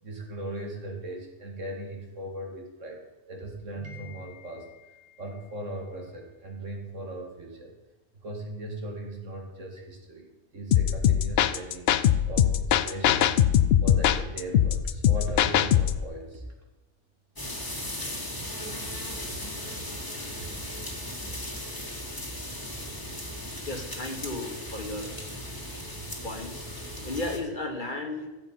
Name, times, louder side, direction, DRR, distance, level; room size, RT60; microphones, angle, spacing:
voice 1, 0.0-7.8 8.2-13.4 13.8-16.4 17.7-17.8 18.8-18.9, right 1 dB, 85° right, 1 dB, 2.6 m, -38 dB
sound 1, 10.7-16.0, left 10 dB, 65° left, 0.7 m, -22 dB
sound 2, 17.4-27.4, left 1 dB, 15° left, 1.6 m, -37 dB
voice 2, 23.7-25.2 26.2-26.7 27.1-28.3, left 2 dB, 40° left, 4 dB, 1.7 m, -34 dB
14.0 x 7.5 x 5.6 m, 1.1 s
omnidirectional pair, 1.3 m